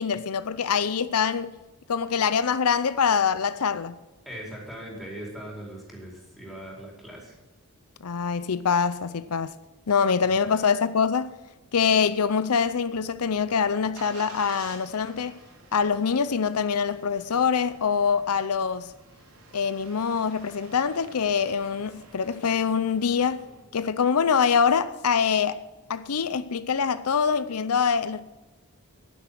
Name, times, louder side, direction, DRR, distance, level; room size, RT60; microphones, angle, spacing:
voice 1, 0.0-1.5 1.9-4.0 8.0-9.5 9.9-11.3 11.7-15.4 15.7-18.9 19.5-23.4 23.7-25.6 25.9-28.2, left 6 dB, 80° left, 0.6 m, -24 dB
voice 2, 4.2-7.3 10.3-10.6, right 1 dB, ahead, 4.7 m, -40 dB
Engine starting, 12.9-23.6, right 3 dB, 70° right, 3.0 m, -50 dB
11.0 x 10.0 x 7.7 m
head